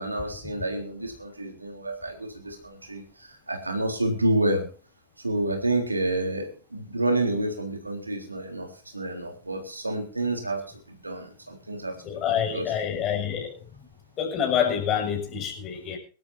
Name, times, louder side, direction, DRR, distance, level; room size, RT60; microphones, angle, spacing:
voice 1, 0.0-4.6 5.2-8.7 8.9-10.6 11.0-12.0 12.2-12.7, right 1 dB, 80° right, 4 dB, 3.8 m, -29 dB
voice 2, 12.0-13.6 14.2-16.0, left 8 dB, 35° left, 3 dB, 6.3 m, -27 dB
24.5 x 12.5 x 2.8 m, 0.38 s
figure-of-eight pair, 90°, 0 cm